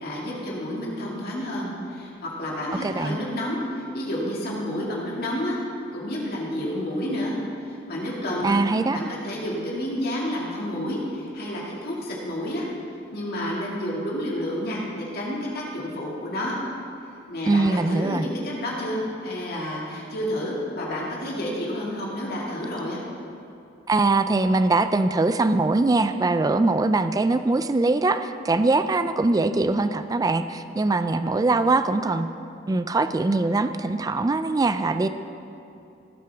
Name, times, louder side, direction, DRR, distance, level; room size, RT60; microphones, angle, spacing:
voice 1, 0.0-5.6 5.9-7.4 7.6-8.6 8.9-12.7 13.1-16.5 17.3-23.0, left 1 dB, 55° left, -4 dB, 2.1 m, -30 dB
voice 2, 2.8-3.2 8.4-9.0 17.5-18.3 23.9-32.3 32.7-35.1, right 3 dB, 20° right, 11 dB, 0.3 m, -22 dB
17.5 x 7.9 x 3.5 m, 2.7 s
head